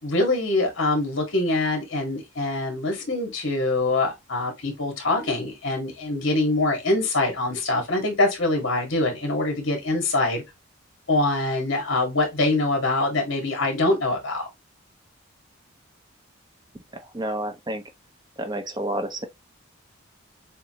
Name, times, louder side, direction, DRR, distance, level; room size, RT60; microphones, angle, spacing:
voice 1, 0.0-10.4 11.1-14.5, left 2 dB, 60° left, 2.0 m, -24 dB
voice 2, 16.9-17.8 18.4-19.3, right 1 dB, 20° right, 0.6 m, -30 dB
6.8 x 2.5 x 3.0 m
head